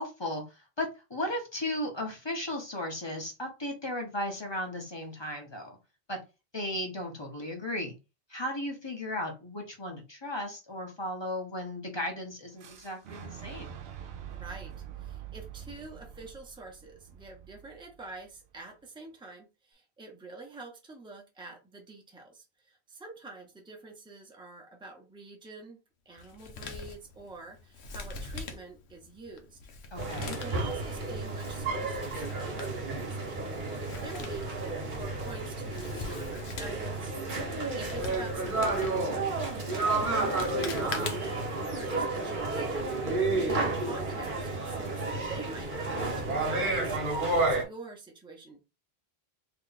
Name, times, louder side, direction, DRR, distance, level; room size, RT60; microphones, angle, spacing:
voice 1, 0.0-5.8 6.1-6.2 6.5-7.9 8.3-13.8 29.9-30.4, left 1 dB, 25° left, 2 dB, 1.0 m, -35 dB
Fire / Explosion, 12.6-18.5, right 9 dB, 70° right, 0.9 m, -45 dB
voice 2, 14.3-25.8 26.0-29.6 30.2-34.5 34.9-39.4 39.7-47.0 47.3-48.7, right 3 dB, 5° right, 1 dB, 0.8 m, -47 dB
Male speech man speaking, 26.2-41.5, left 4 dB, 85° left, 1.0 m, -44 dB
sound 1, 30.0-47.6, right 3 dB, 50° right, 1.2 m, -31 dB
3.1 x 2.9 x 3.9 m, 0.27 s
omnidirectional pair, 1.1 m